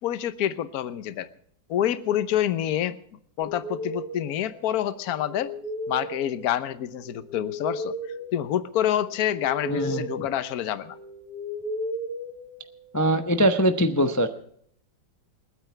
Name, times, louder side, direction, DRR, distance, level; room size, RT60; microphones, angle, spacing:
voice 1, 0.0-1.3 1.7-3.0 3.4-5.5 5.9-7.9 8.3-11.0, left 11 dB, 60° left, 13 dB, 1.2 m, -27 dB
sound 1, 3.4-13.1, equal, 5° left, 5.1 m, -36 dB
voice 2, 9.7-10.0 12.9-14.3, right 1 dB, 25° left, 7 dB, 0.3 m, -22 dB
29.0 x 9.8 x 3.4 m, 0.64 s
omnidirectional pair, 2.1 m